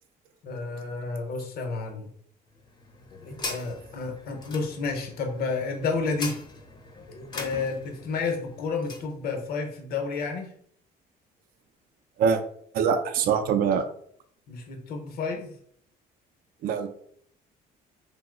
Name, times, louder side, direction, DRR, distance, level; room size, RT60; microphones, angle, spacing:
voice 1, 0.4-2.1 3.1-6.4 7.1-10.5 14.5-15.6, left 4 dB, 65° left, 4 dB, 0.8 m, -31 dB
sound 1, 2.5-9.1, left 3 dB, 25° left, 0.6 m, -41 dB
voice 2, 12.7-13.8 16.6-16.9, right 6 dB, 60° right, 7 dB, 0.4 m, -23 dB
2.7 x 2.0 x 3.7 m, 0.64 s
cardioid pair, 110°, 17 cm